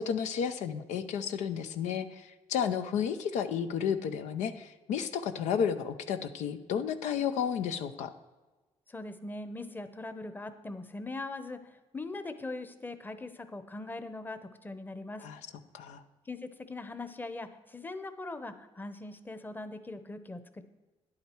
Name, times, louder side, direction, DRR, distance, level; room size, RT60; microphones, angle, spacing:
voice 1, 0.0-8.1 15.2-15.4 15.7-16.0, left 7 dB, 85° left, 9 dB, 0.6 m, -32 dB
voice 2, 8.9-11.6 11.9-15.2 16.3-20.6, left 2 dB, 15° left, 10 dB, 0.8 m, -41 dB
10.5 x 8.7 x 4.5 m, 1.2 s
cardioid pair, 85°, 12 cm